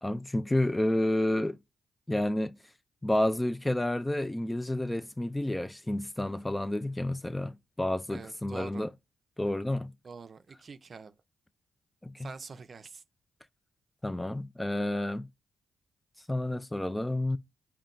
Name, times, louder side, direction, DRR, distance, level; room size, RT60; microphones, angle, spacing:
voice 1, 0.0-1.6 2.1-2.6 3.0-8.9 9.4-9.9 12.0-12.3 14.0-15.3 16.3-17.4, left 1 dB, 15° left, 0.3 m, -30 dB
voice 2, 8.1-8.9 10.0-11.1 12.2-13.0, right 5 dB, 50° right, 0.5 m, -45 dB
4.0 x 2.2 x 3.7 m
cardioid pair, 65°, 0 cm